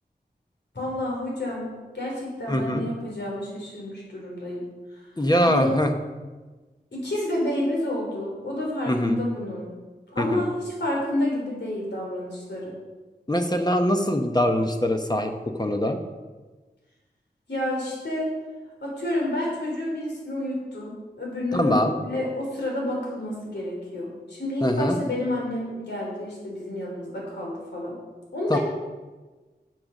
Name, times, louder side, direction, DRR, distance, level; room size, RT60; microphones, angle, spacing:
voice 1, 0.7-4.6 4.9-5.1 5.4-5.7 6.9-9.7 10.1-12.7 17.5-18.3 18.8-27.9 28.3-28.6, left 1 dB, 80° left, -3 dB, 3.8 m, -29 dB
voice 2, 2.5-2.8 5.2-5.9 8.9-9.2 10.2-10.4 13.3-15.3 15.6-16.0 21.5-21.9 24.6-25.0 28.5-28.6, equal, 25° left, 4 dB, 0.9 m, -22 dB
7.8 x 7.4 x 6.5 m, 1.3 s
wide cardioid pair, 60°, 18 cm